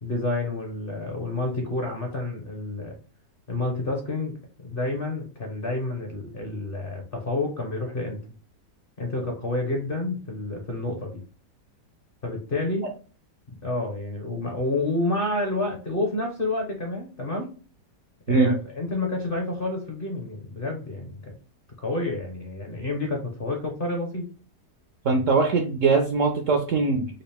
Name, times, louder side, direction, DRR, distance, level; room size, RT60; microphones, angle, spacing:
voice 1, 0.0-2.9 3.5-4.3 4.6-8.2 9.0-11.2 12.2-12.9 13.6-17.5 18.3-21.3 21.8-24.3, left 2 dB, 45° left, 1 dB, 0.8 m, -29 dB
voice 2, 25.0-27.1, right 4 dB, 65° right, 3 dB, 0.8 m, -21 dB
4.1 x 2.5 x 3.4 m, 0.36 s
omnidirectional pair, 1.9 m